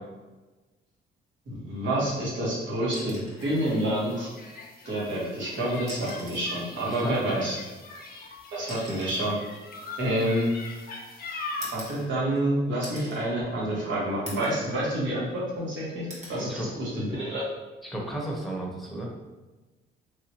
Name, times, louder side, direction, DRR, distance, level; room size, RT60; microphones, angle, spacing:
voice 1, 1.5-4.3 4.8-7.6 8.5-9.4 10.0-10.5 11.7-17.5, right 1 dB, 70° right, -6 dB, 1.4 m, -28 dB
sound 1, 2.9-3.6 5.0-5.1 5.8-6.5 7.7-10.8 11.6-12.4 12.8-13.2 13.7-13.8 14.3-14.6 15.1-15.7 16.1-16.4 17.9-18.1, right 1 dB, 35° right, 1.0 m, -44 dB
sound 2, 3.4-12.0, left 3 dB, 50° left, 0.6 m, -41 dB
voice 2, 6.8-7.5 16.4-16.7 17.8-19.1, right 1 dB, ahead, -3 dB, 0.8 m, -34 dB
3.2 x 2.7 x 2.8 m, 1.2 s
cardioid pair, 90°, 20 cm